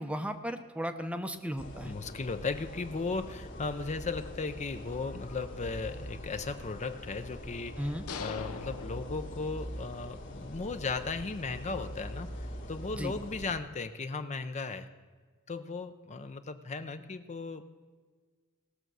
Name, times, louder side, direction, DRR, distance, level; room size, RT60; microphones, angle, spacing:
voice 1, 0.0-1.9 7.8-8.0 12.9-13.2, equal, 5° right, 9 dB, 0.7 m, -35 dB
sound 1, 1.6-13.5, equal, 55° left, 2.1 m, -43 dB
voice 2, 1.8-14.9 15.5-17.6, left 4 dB, 30° left, 9 dB, 0.6 m, -36 dB
sound 2, 8.1-9.9, left 5 dB, 80° left, 0.8 m, -42 dB
18.5 x 6.7 x 6.2 m, 1.5 s
head